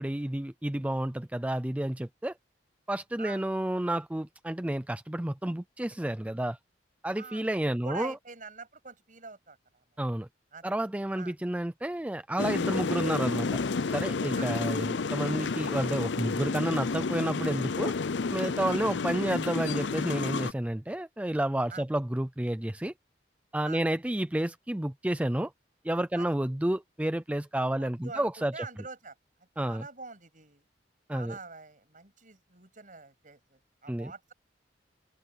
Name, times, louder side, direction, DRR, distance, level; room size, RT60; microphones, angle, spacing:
voice 1, 0.0-2.3 2.9-6.6 7.0-8.2 10.0-10.3 10.6-13.5 13.9-17.9 18.3-22.9 23.5-25.5 25.8-28.7 29.6-29.9 31.1-31.4 33.9-34.1, right 1 dB, 10° right, 0.4 m, -30 dB
voice 2, 7.1-9.6 10.5-10.6 11.2-11.3 14.4-14.5 18.7-18.8 21.7-21.8 23.6-23.8 26.1-26.3 27.8-29.1 29.6-30.6 31.1-34.3, right 4 dB, 45° right, 7.5 m, -45 dB
sound 1, 12.4-20.5, left 4 dB, 80° left, 0.6 m, -30 dB
head